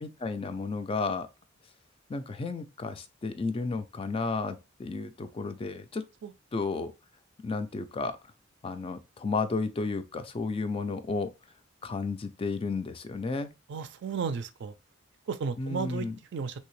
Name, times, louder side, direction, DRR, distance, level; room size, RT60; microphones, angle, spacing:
voice 1, 0.0-1.3 2.1-6.0 6.5-6.9 7.4-8.2 8.6-11.3 11.8-13.5 15.6-16.2, left 4 dB, 30° left, 0.4 m, -32 dB
voice 2, 13.7-14.7 15.3-16.1 16.3-16.5, right 5 dB, 60° right, 0.4 m, -33 dB
3.3 x 2.7 x 3.0 m
head